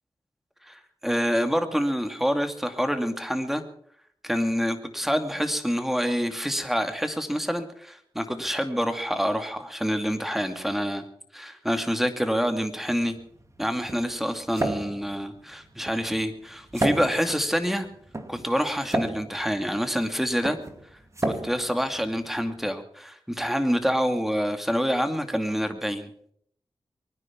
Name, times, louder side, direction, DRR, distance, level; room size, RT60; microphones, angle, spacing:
voice 1, 0.6-3.6 4.2-11.0 11.3-13.2 13.6-17.9 18.3-20.6 21.2-26.1, equal, 5° right, 7 dB, 2.5 m, -27 dB
sound 1, 12.9-22.7, right 1 dB, 30° right, 2.4 m, -33 dB
23.5 x 9.9 x 6.0 m, 0.64 s
cardioid pair, 45°, 10 cm